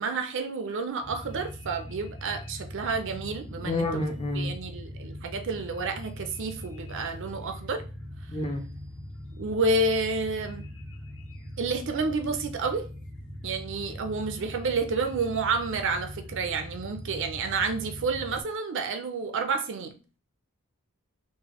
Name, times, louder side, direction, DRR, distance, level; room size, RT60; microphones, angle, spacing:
voice 1, 0.0-4.1 4.3-7.8 9.4-10.7 11.6-12.9 13.4-19.9, right 3 dB, 55° right, 7 dB, 0.5 m, -30 dB
sound 1, 1.0-18.4, left 1 dB, 55° left, 1.3 m, -41 dB
voice 2, 3.6-4.5 8.3-8.6, left 2 dB, 25° left, 4 dB, 0.4 m, -29 dB
3.8 x 2.2 x 2.9 m, 0.35 s
head